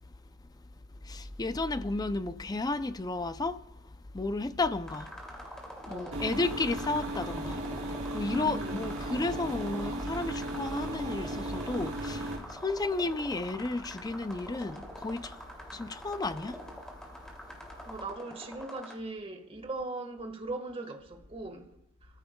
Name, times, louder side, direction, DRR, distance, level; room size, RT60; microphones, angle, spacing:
voice 1, 1.0-5.1 5.9-7.6 7.9-15.4 15.7-16.6, left 2 dB, 20° left, 0.5 m, -33 dB
sound 1, 4.9-18.9, equal, 5° left, 2.6 m, -45 dB
voice 2, 5.9-6.2 8.3-8.8 17.8-21.7, right 2 dB, 25° right, 1.6 m, -39 dB
sound 2, 6.1-12.4, right 1 dB, 65° right, 3.6 m, -36 dB
29.5 x 14.5 x 2.3 m
head